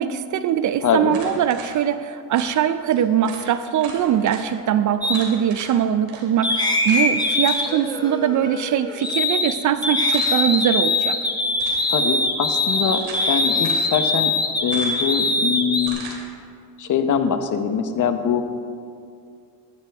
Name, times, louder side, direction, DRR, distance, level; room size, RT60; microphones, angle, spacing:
voice 1, 0.0-11.2, right 9 dB, 45° right, 12 dB, 0.5 m, -22 dB
voice 2, 0.8-1.2 11.9-13.0 13.3-14.3 14.6-16.0 16.8-18.4, left 7 dB, 40° left, 8 dB, 1.0 m, -23 dB
sound 1, 1.1-1.7 2.3-2.5 2.9-3.0 3.2-3.4 3.8-4.4 5.1-5.7 6.1-6.2 6.9-7.0 7.4-7.7 10.1-10.6 11.5-11.9 12.6-13.3 13.6-13.9 14.7-15.1 15.8-16.2, right 4 dB, 75° right, 3.2 m, -38 dB
sound 2, 5.0-5.2 6.4-9.5 9.8-15.9, left 2 dB, 10° left, 1.1 m, -22 dB
14.0 x 12.0 x 3.5 m, 2.4 s
cardioid pair, 105°, 45 cm